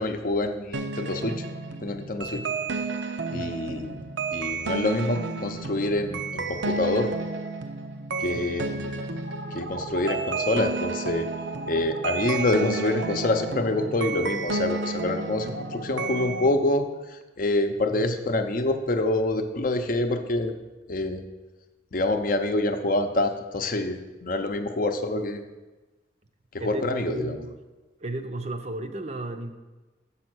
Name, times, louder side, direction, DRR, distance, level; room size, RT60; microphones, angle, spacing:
voice 1, 0.0-1.4 1.8-2.4 3.3-4.0 4.3-7.1 8.2-9.1 9.5-11.3 11.7-20.6 20.9-21.2 21.9-25.4 26.5-27.4, left 2 dB, 45° left, 7 dB, 0.6 m, -26 dB
sound 1, 0.7-16.5, right 3 dB, 75° right, 0.7 m, -31 dB
voice 2, 26.6-27.6 28.0-29.5, right 2 dB, 35° right, 7 dB, 0.6 m, -34 dB
7.3 x 5.6 x 6.1 m, 1.2 s
head